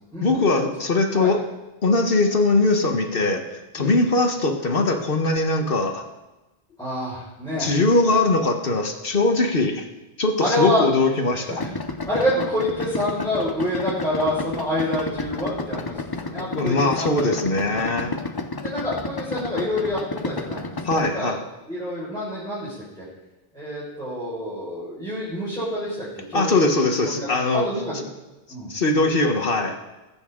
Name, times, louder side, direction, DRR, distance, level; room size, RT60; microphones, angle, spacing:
voice 1, 0.2-1.4 1.8-6.0 7.6-9.9 10.2-11.6 16.4-18.1 20.8-21.4 26.3-27.7 28.7-29.8, left 2 dB, 60° left, 5 dB, 1.3 m, -21 dB
voice 2, 6.8-7.7 10.4-10.9 11.3-11.7 12.1-17.3 17.7-17.9 18.6-21.4 21.7-23.0 23.5-26.8 27.1-27.3 27.5-28.1 28.5-28.7, left 1 dB, 5° left, -10 dB, 5.2 m, -27 dB
Idling, 11.6-21.1, left 3 dB, 30° left, 0.5 m, -31 dB
21.0 x 8.2 x 3.7 m, 1.1 s
omnidirectional pair, 1.1 m